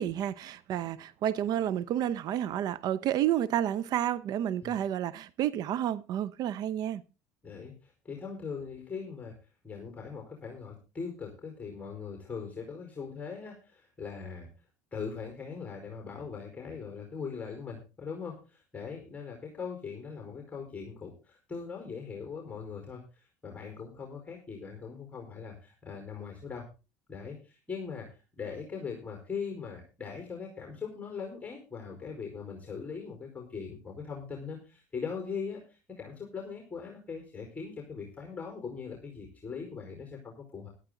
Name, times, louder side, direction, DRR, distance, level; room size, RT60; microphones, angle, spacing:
voice 1, 0.0-7.0, right 11 dB, 55° right, 0.8 m, -30 dB
voice 2, 7.4-9.3 9.6-14.5 14.9-26.7 27.1-40.7, left 5 dB, 15° left, 4.7 m, -40 dB
13.5 x 12.5 x 3.9 m
supercardioid pair, 90°, 8 cm